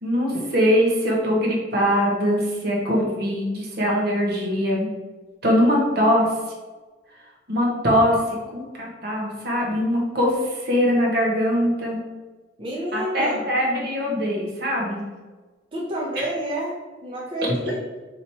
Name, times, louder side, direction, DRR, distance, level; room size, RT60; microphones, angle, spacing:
voice 1, 0.0-4.9 5.4-6.3 7.5-12.0 12.9-15.1 16.2-16.3, equal, 60° right, -1 dB, 1.0 m, -22 dB
voice 2, 12.6-13.5 15.7-16.7 17.0-17.8, right 1 dB, 30° right, -5 dB, 0.6 m, -29 dB
3.1 x 2.9 x 4.1 m, 1.3 s
head